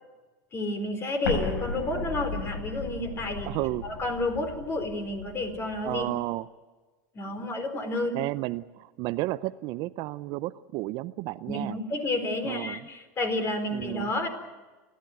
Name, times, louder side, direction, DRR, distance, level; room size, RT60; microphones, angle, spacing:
voice 1, 0.5-3.6 3.8-6.1 7.1-8.1 11.5-14.3, left 2 dB, 30° left, 8 dB, 4.0 m, -30 dB
Explosion, 1.2-6.0, left 3 dB, 80° left, 5.9 m, -36 dB
voice 2, 3.4-3.9 5.8-6.5 8.1-11.8 12.4-12.8 13.7-14.1, right 18 dB, 55° right, 15 dB, 0.6 m, -32 dB
29.5 x 12.5 x 9.4 m, 1.3 s
hypercardioid pair, 105°, 9 cm